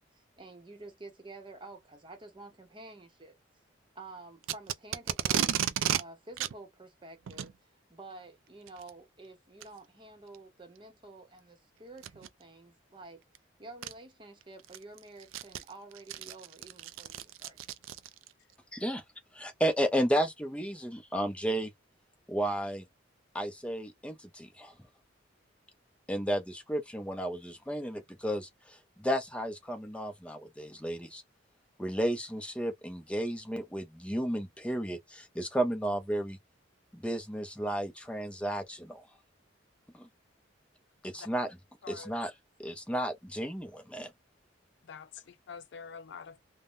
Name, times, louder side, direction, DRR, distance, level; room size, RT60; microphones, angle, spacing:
voice 1, 0.1-3.4 3.9-5.5 6.0-13.2 13.6-17.6, right 2 dB, 25° right, 0.9 m, -50 dB
Packing tape duct tape, 4.4-6.0 6.4-6.5 7.3-7.5 8.7-8.9 9.6-9.7 10.3-10.4 12.0-12.3 13.3-13.4 13.8-13.9 14.4-18.3, right 10 dB, 90° right, 0.4 m, -33 dB
voice 2, 18.7-19.0 19.3-21.7 22.3-22.9 23.3-24.7 26.1-31.2 31.8-36.4 36.9-39.0 39.9-40.1 41.0-41.6 41.9-42.3 42.6-44.1, equal, 5° left, 0.6 m, -33 dB
voice 3, 44.9-46.4, left 6 dB, 60° left, 0.4 m, -46 dB
3.4 x 2.1 x 2.5 m
head